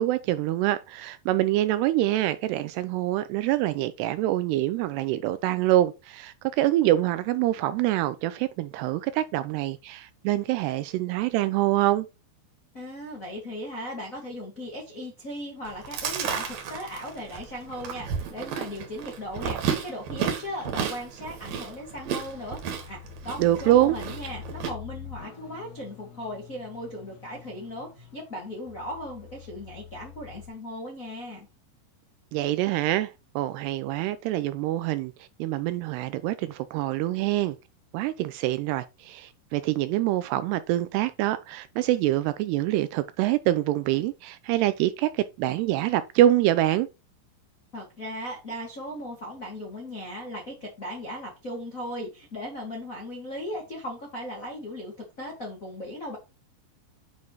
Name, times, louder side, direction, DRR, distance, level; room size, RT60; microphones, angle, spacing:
voice 1, 0.0-12.1 23.4-24.0 32.3-37.6 37.9-46.9, right 14 dB, 85° right, 2.4 m, -25 dB
voice 2, 12.7-22.6 22.8-31.5 47.7-56.2, equal, 80° left, 0.7 m, -37 dB
Chewing mastication, 15.7-24.7, right 7 dB, 60° right, 2.7 m, -33 dB
sound 1, 21.0-30.5, left 9 dB, 55° left, 2.4 m, -46 dB
9.5 x 5.4 x 3.1 m
omnidirectional pair, 5.1 m